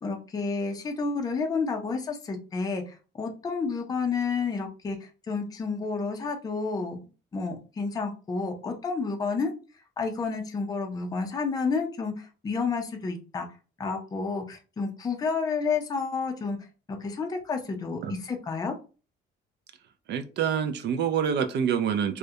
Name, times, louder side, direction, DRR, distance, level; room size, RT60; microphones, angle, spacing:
voice 1, 0.0-7.0 7.3-9.5 10.0-13.5 13.8-16.6 16.9-18.7, left 4 dB, 20° left, 4 dB, 0.4 m, -30 dB
voice 2, 20.1-22.2, right 8 dB, 60° right, 8 dB, 0.4 m, -26 dB
2.3 x 2.1 x 2.7 m, 0.34 s
cardioid pair, 125°, 20 cm